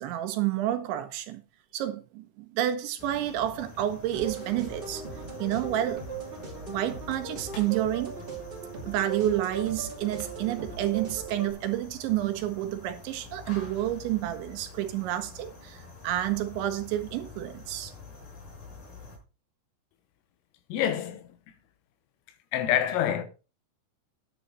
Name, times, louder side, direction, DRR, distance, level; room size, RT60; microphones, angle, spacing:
voice 1, 0.0-1.4 1.7-5.0 5.4-6.0 6.7-8.1 8.8-17.9, right 13 dB, 75° right, 3.1 m, -29 dB
sound 1, 1.5-1.8 3.3-4.7 5.0-5.1 5.4-5.5 6.9-8.0 9.8-9.9 10.1-10.7, left 4 dB, 70° left, 3.8 m, -51 dB
sound 2, 3.0-19.2, left 4 dB, 45° left, 6.1 m, -47 dB
sound 3, 4.1-11.5, right 5 dB, 25° right, 1.1 m, -39 dB
voice 2, 20.7-21.4 22.5-23.2, left 10 dB, 90° left, 3.8 m, -26 dB
10.0 x 8.3 x 4.0 m
omnidirectional pair, 5.8 m